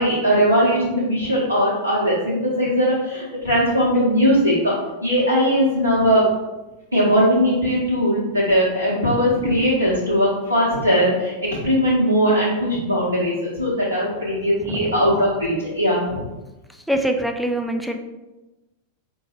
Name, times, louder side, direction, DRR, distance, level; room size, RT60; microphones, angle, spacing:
voice 1, 0.0-4.7 5.0-6.2 6.9-11.3 11.6-16.2, equal, 85° right, -9 dB, 0.8 m, -19 dB
voice 2, 14.6-14.9 16.7-18.0, right 1 dB, ahead, 4 dB, 0.3 m, -25 dB
4.4 x 2.3 x 3.0 m, 1.1 s
figure-of-eight pair, 90°, 0 cm